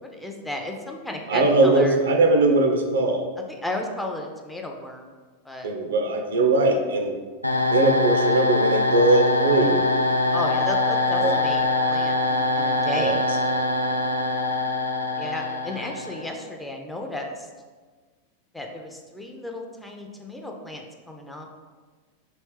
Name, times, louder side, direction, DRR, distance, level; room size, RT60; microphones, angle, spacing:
voice 1, 0.0-2.0 3.5-5.1 5.4-5.7 10.3-13.2 15.2-17.5 18.5-21.5, left 1 dB, 5° left, 1 dB, 0.4 m, -34 dB
voice 2, 1.3-3.3 5.6-7.1 7.7-9.9 11.2-11.4 12.9-13.2, right 2 dB, 65° right, 4 dB, 0.4 m, -20 dB
sound 1, 7.4-16.3, left 2 dB, 90° left, 0.3 m, -23 dB
3.1 x 2.9 x 3.2 m, 1.4 s
figure-of-eight pair, 90°, 0 cm